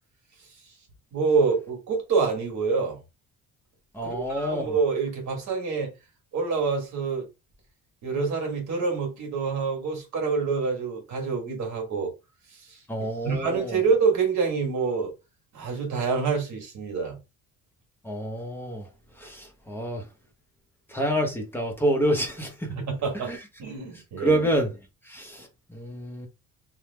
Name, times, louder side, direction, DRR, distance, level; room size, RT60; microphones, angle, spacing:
voice 1, 1.1-3.0 4.0-5.9 6.3-7.3 8.0-12.1 13.2-15.1 15.5-17.2 22.7-23.3 23.6-24.4, right 5 dB, 55° right, 1.3 m, -26 dB
voice 2, 3.9-4.8 12.9-13.8 18.0-18.9 19.2-20.1 20.9-22.7 23.3-23.4 24.2-24.7 25.1-26.3, equal, 5° left, 0.5 m, -28 dB
3.2 x 2.0 x 3.1 m
cardioid pair, 170°, 34 cm